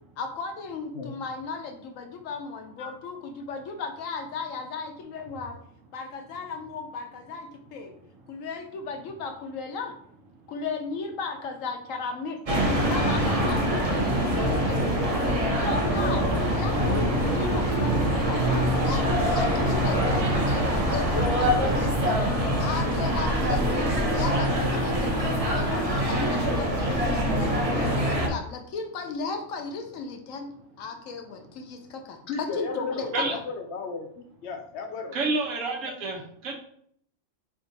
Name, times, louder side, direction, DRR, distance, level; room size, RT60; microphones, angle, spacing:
voice 1, 0.2-5.6 5.9-8.0 8.3-10.0 10.5-12.4 12.9-15.0 15.6-22.2 22.6-23.6 24.1-27.6 27.9-30.5 30.8-33.1, left 4 dB, 85° left, 5 dB, 1.1 m, -35 dB
sound 1, 12.4-28.3, equal, 40° right, 0.6 m, -24 dB
voice 2, 32.3-35.2 35.9-36.0, left 4 dB, 65° left, 4 dB, 0.8 m, -35 dB
voice 3, 35.1-36.5, right 3 dB, 80° right, 1 dB, 1.2 m, -29 dB
3.6 x 2.5 x 3.9 m, 0.65 s
omnidirectional pair, 1.3 m